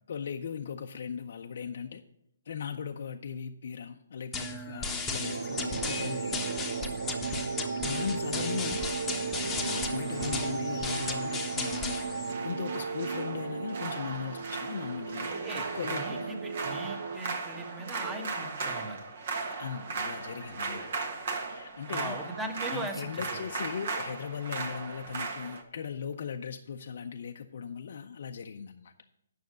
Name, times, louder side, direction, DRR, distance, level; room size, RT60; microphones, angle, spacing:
voice 1, 0.1-2.0 2.5-6.5 7.8-8.8 9.4-16.4 19.6-21.0 21.5-22.2 22.7-28.9, left 7 dB, 60° left, 4 dB, 0.5 m, -38 dB
sound 1, 4.3-12.3, left 3 dB, 10° left, 1.0 m, -35 dB
sound 2, 5.2-17.2, right 5 dB, 75° right, 0.3 m, -35 dB
sound 3, 8.8-25.6, right 4 dB, 55° right, 1.5 m, -38 dB
voice 2, 15.3-19.0 21.9-23.2, right 2 dB, 10° right, 4 dB, 1.3 m, -39 dB
9.4 x 6.4 x 6.3 m, 0.79 s
hypercardioid pair, 150°, 0 cm